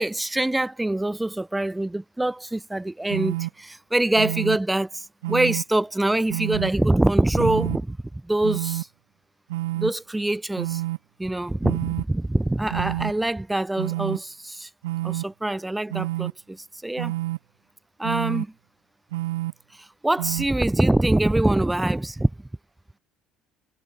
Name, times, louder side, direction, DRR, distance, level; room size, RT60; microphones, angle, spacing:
voice 1, 0.0-8.0 8.2-8.9 9.7-10.8 11.2-14.7 15.0-17.1 18.0-18.5 19.8-22.3, right 1 dB, 10° right, 3.3 m, -24 dB
sound 1, 3.1-3.5 4.2-4.6 5.2-5.6 6.3-6.7 7.4-7.8 8.4-8.8 9.5-9.9 10.6-11.0 11.6-12.0 12.7-13.1 13.8-14.2 14.8-15.2 15.9-16.3 17.0-17.4 18.0-18.4 19.1-19.5 20.2-20.4, right 17 dB, 80° right, 1.2 m, -28 dB
hypercardioid pair, 60°, 0 cm